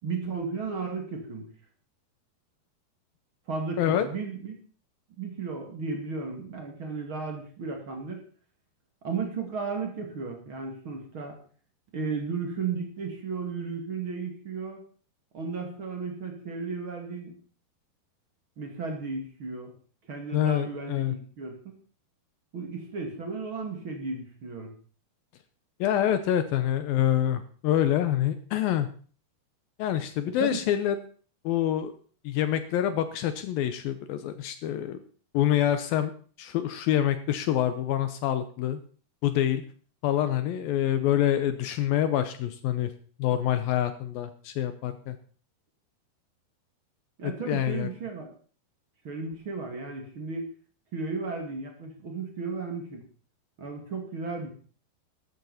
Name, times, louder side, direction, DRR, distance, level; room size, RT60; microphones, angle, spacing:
voice 1, 0.0-1.5 3.5-4.5 5.2-8.2 9.0-11.4 11.9-14.8 15.3-17.3 18.6-19.7 20.1-21.7 22.5-24.7 30.2-30.6 47.2-48.3 49.0-50.5 50.9-53.0 53.6-54.5, right 4 dB, 35° right, 3 dB, 2.5 m, -34 dB
voice 2, 20.3-21.1 25.8-28.9 29.8-31.0 31.5-31.9 32.2-35.0 35.3-36.1 36.4-38.8 39.2-39.6 40.0-42.9 43.2-45.2 47.2-47.9, left 11 dB, 80° left, 10 dB, 2.3 m, -26 dB
13.5 x 12.0 x 4.2 m, 0.41 s
omnidirectional pair, 4.8 m